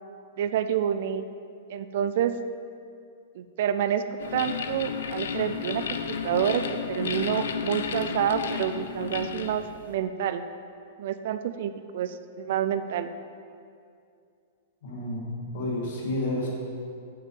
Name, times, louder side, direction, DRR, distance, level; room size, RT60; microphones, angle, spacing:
voice 1, 0.4-1.3 1.7-2.3 3.3-6.6 6.9-10.4 11.0-13.1, right 9 dB, 45° right, 10 dB, 0.4 m, -28 dB
sound 1, 4.2-9.9, left 6 dB, 75° left, 0.6 m, -32 dB
voice 2, 14.8-16.5, left 1 dB, 50° left, -3 dB, 2.1 m, -30 dB
6.7 x 6.2 x 7.2 m, 2.4 s
supercardioid pair, 175°, 0 cm